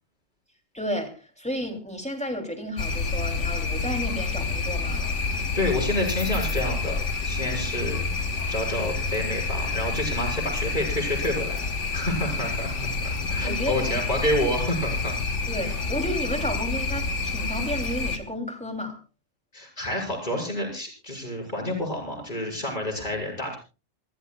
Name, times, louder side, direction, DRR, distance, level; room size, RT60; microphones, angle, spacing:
voice 1, 0.7-5.0 5.7-6.0 12.1-12.4 13.3-14.0 15.5-18.9, equal, 5° left, 4 dB, 2.9 m, -32 dB
sound 1, 2.8-18.2, left 3 dB, 75° left, 1.7 m, -28 dB
voice 2, 5.3-7.0 7.2-8.1 8.5-15.2 19.5-23.6, left 1 dB, 40° left, 0 dB, 6.3 m, -29 dB
29.0 x 14.5 x 2.3 m, 0.32 s
omnidirectional pair, 1.3 m